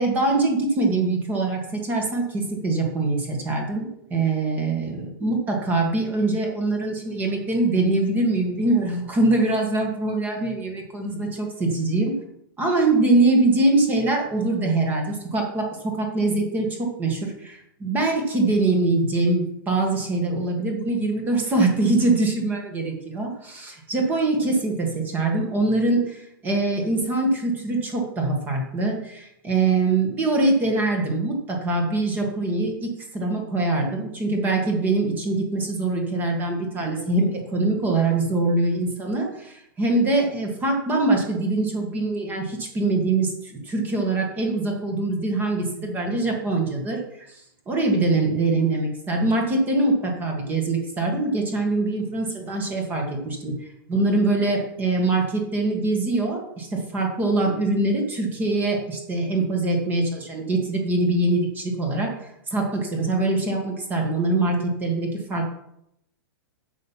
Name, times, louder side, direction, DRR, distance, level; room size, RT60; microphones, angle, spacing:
voice 1, 0.0-12.2 12.6-65.5, right 2 dB, 15° right, 1 dB, 1.8 m, -23 dB
9.1 x 7.2 x 5.8 m, 0.78 s
hypercardioid pair, 160°, 12 cm